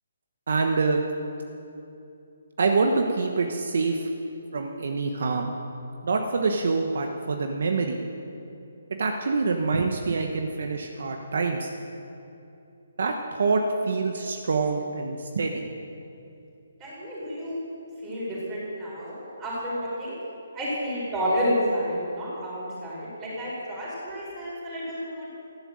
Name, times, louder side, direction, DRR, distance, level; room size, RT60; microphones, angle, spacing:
voice 1, 0.5-1.0 2.6-4.1 4.5-5.5 6.0-8.0 9.0-11.7 13.0-15.6, right 4 dB, 60° right, 3 dB, 1.2 m, -25 dB
voice 2, 16.8-17.6 18.0-20.2 20.5-25.3, equal, 15° right, -6 dB, 4.5 m, -30 dB
14.5 x 11.5 x 7.7 m, 2.7 s
hypercardioid pair, 175°, 0 cm